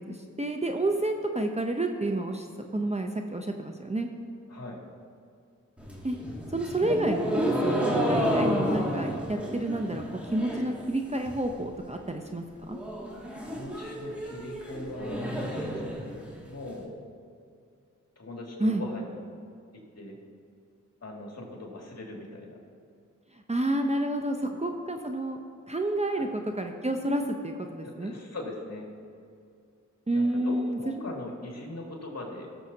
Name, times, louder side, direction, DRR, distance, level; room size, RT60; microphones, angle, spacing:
voice 1, 0.1-2.5 2.7-4.1 6.0-6.2 6.5-12.8 18.6-18.8 23.5-25.4 25.7-28.1 30.1-31.1, right 1 dB, 20° right, 4 dB, 0.7 m, -29 dB
sound 1, 5.8-10.8 11.1-11.6 11.9-12.0 12.3-12.4 12.7-16.7, equal, 5° right, 2.4 m, -31 dB
voice 2, 13.3-16.1 16.5-17.0 18.2-19.3 20.0-20.2 21.0-22.6 24.5-24.6 26.1-26.3 27.8-28.9 30.1-32.5, left 2 dB, 50° left, -2 dB, 2.5 m, -40 dB
17.5 x 7.1 x 2.9 m, 2.4 s
cardioid pair, 55°, 32 cm